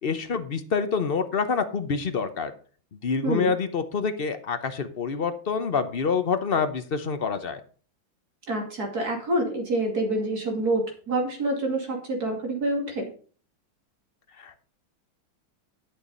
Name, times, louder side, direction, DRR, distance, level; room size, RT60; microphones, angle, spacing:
voice 1, 0.0-2.5 2.9-7.6 14.4-14.6, left 5 dB, 50° left, 10 dB, 0.7 m, -27 dB
voice 2, 3.2-3.5 8.5-13.1, right 1 dB, 50° right, 2 dB, 3.2 m, -27 dB
11.5 x 6.8 x 5.4 m, 0.42 s
omnidirectional pair, 2.1 m